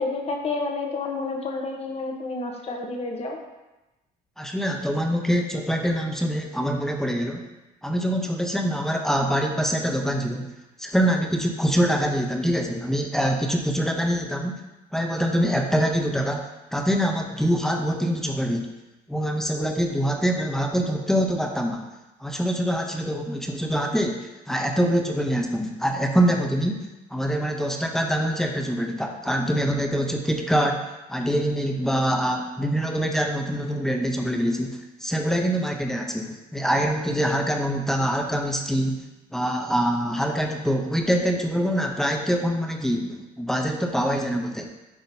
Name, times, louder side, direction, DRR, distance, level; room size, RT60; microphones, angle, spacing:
voice 1, 0.0-3.4, left 3 dB, 35° left, 2 dB, 1.0 m, -29 dB
voice 2, 4.4-7.5 7.8-10.5 10.8-14.6 14.9-18.7 19.1-21.9 22.2-26.9 27.1-30.8 31.1-39.0 39.3-44.7, equal, ahead, 2 dB, 0.7 m, -24 dB
10.5 x 3.7 x 2.7 m, 1.0 s
cardioid pair, 110°, 17 cm